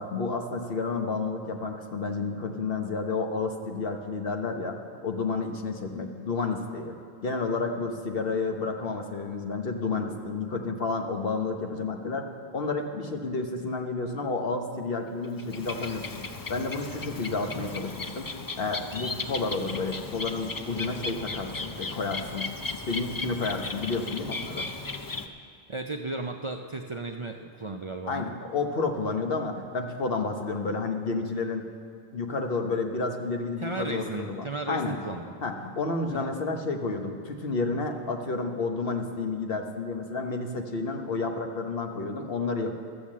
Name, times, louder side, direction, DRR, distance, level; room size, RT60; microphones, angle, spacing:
voice 1, 0.0-4.8 5.0-7.0 7.2-12.3 12.5-16.2 16.5-22.5 22.9-24.6 28.1-31.6 32.1-35.0 35.4-42.8, left 3 dB, 65° left, 4 dB, 1.2 m, -30 dB
Bird, 15.2-25.3, left 3 dB, 30° left, 0.4 m, -36 dB
voice 2, 25.7-28.2 33.6-35.3 36.1-36.3, right 3 dB, 40° right, 3 dB, 0.5 m, -35 dB
13.5 x 7.0 x 7.4 m, 2.2 s
omnidirectional pair, 1.0 m